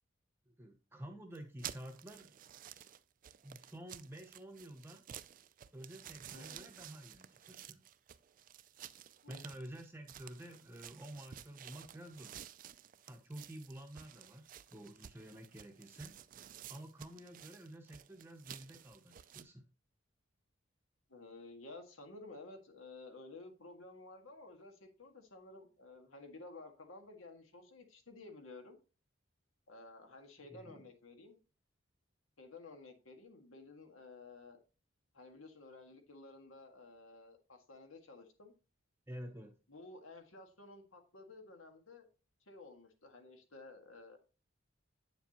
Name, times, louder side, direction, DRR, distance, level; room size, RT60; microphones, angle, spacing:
voice 1, 0.5-2.3 2.8-2.9 3.4-5.0 5.7-7.8 9.3-12.4 13.1-16.2 16.7-19.6 30.5-30.9 39.1-39.5, right 1 dB, 10° right, 3 dB, 0.8 m, -50 dB
sound 1, 1.4-19.4, right 10 dB, 40° right, 0.4 m, -53 dB
voice 2, 6.3-6.7 9.2-9.4 21.1-28.8 29.7-31.4 32.4-34.6 35.1-38.5 39.7-42.1 42.5-44.2, left 3 dB, 80° left, 5 dB, 1.8 m, -53 dB
8.3 x 7.0 x 2.9 m, 0.34 s
head